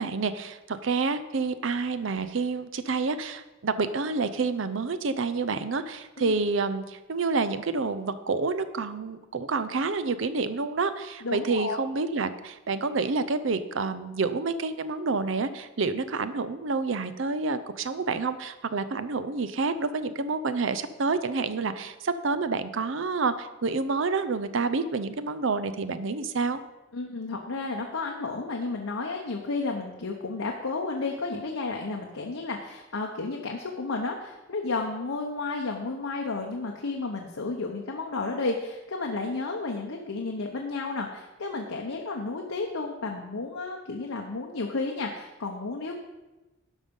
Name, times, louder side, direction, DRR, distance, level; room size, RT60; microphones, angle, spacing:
voice 1, 0.0-26.6, right 4 dB, 65° right, 11 dB, 0.6 m, -28 dB
voice 2, 11.2-11.8 26.9-46.0, left 3 dB, 80° left, 1 dB, 0.9 m, -32 dB
11.5 x 5.5 x 5.4 m, 1.1 s
head